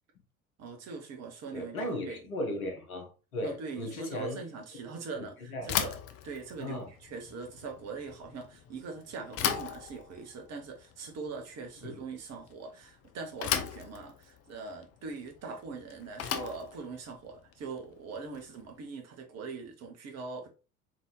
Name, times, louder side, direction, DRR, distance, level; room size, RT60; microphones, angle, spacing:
voice 1, 0.6-2.2 3.4-6.0 6.2-20.5, right 4 dB, 35° right, 1.1 m, -42 dB
voice 2, 1.5-4.4 5.1-5.7 6.6-6.9 11.8-12.0, left 1 dB, 75° left, 1.2 m, -37 dB
Bicycle / Thump thud, 5.6-18.7, left 9 dB, 35° left, 0.6 m, -38 dB
4.0 x 3.7 x 3.1 m
figure-of-eight pair, 65°, 43 cm